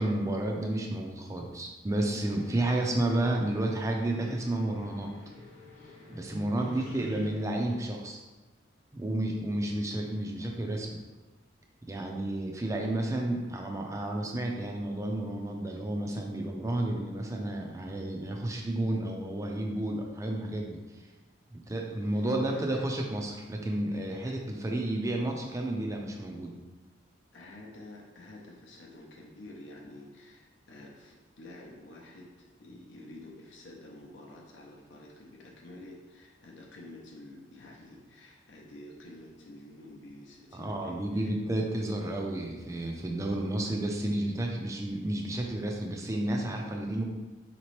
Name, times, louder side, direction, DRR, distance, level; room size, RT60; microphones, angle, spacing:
voice 1, 0.0-5.1 6.1-8.2 8.9-10.9 11.9-20.8 21.5-26.5 40.5-47.0, right 1 dB, 15° right, 0 dB, 0.4 m, -31 dB
sound 1, 2.1-7.5, left 1 dB, 40° left, 0.7 m, -47 dB
voice 2, 6.6-7.0 22.0-22.9 24.2-24.4 27.3-41.4, left 1 dB, 80° left, -2 dB, 0.6 m, -49 dB
4.9 x 2.9 x 3.1 m, 1.2 s
head